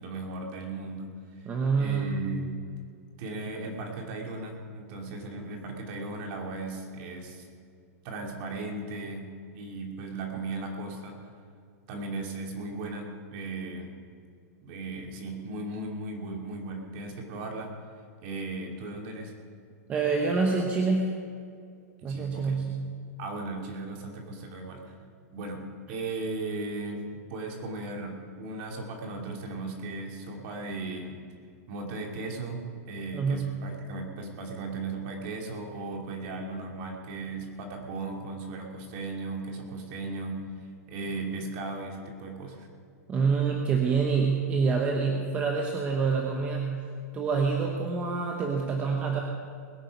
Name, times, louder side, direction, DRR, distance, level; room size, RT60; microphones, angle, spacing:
voice 1, 0.0-1.4 1.8-2.6 3.2-7.4 8.0-11.2 11.9-13.9 14.6-17.7 18.2-19.3 22.0-22.6 23.2-24.9 25.3-31.2 31.7-40.4 40.9-42.7, right 3 dB, 40° right, 1 dB, 2.5 m, -37 dB
voice 2, 1.4-2.3 19.9-21.1 22.0-22.8 33.1-33.5 43.1-46.7 47.1-49.2, right 5 dB, 15° right, 1 dB, 1.0 m, -26 dB
21.0 x 8.9 x 5.2 m, 2.2 s
supercardioid pair, 165°, 9 cm